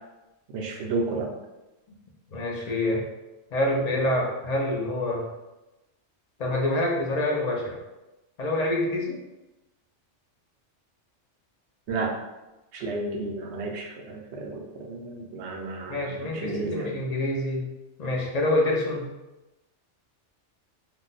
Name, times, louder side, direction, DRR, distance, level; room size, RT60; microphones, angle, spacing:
voice 1, 0.5-1.3 11.9-12.1 12.7-16.9, right 3 dB, 75° right, 0 dB, 0.9 m, -32 dB
voice 2, 2.3-3.0 3.5-5.3 6.4-7.8 8.4-9.2 15.9-17.7 18.0-19.1, left 1 dB, 50° left, -1 dB, 0.5 m, -26 dB
2.6 x 2.1 x 3.9 m, 1.0 s
omnidirectional pair, 1.2 m